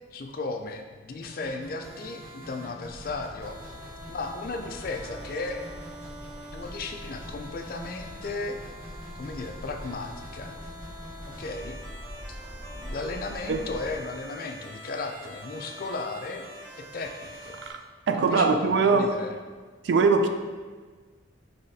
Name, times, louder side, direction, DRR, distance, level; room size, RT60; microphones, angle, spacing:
voice 1, 0.1-3.8 4.1-5.6 6.5-8.6 9.1-10.6 11.4-11.8 12.8-16.4 16.8-17.6 18.3-19.4, left 3 dB, 50° left, 4 dB, 0.4 m, -35 dB
sound 1, 1.2-17.7, equal, 50° right, 1.4 m, -44 dB
sound 2, 2.8-14.0, equal, 30° right, 0.9 m, -44 dB
voice 2, 18.1-19.1 19.8-20.3, right 4 dB, 70° right, 6 dB, 0.4 m, -21 dB
5.6 x 3.2 x 2.7 m, 1.5 s
head